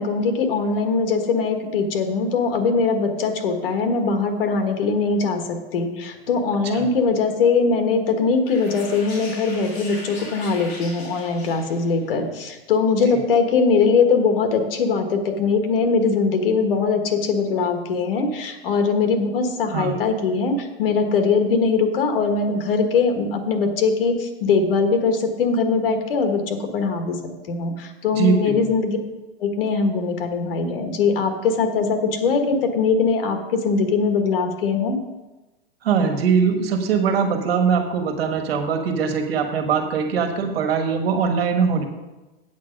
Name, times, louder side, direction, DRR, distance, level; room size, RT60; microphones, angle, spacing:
voice 1, 0.0-27.2 27.5-29.0 29.4-35.0, left 4 dB, 70° left, 6 dB, 1.5 m, -21 dB
sound 1, 8.5-12.1, left 2 dB, 35° left, 2.6 m, -39 dB
voice 2, 28.1-28.6 35.8-41.8, right 6 dB, 75° right, 6 dB, 1.7 m, -21 dB
8.4 x 7.5 x 5.2 m, 1.1 s
supercardioid pair, 175°, 30 cm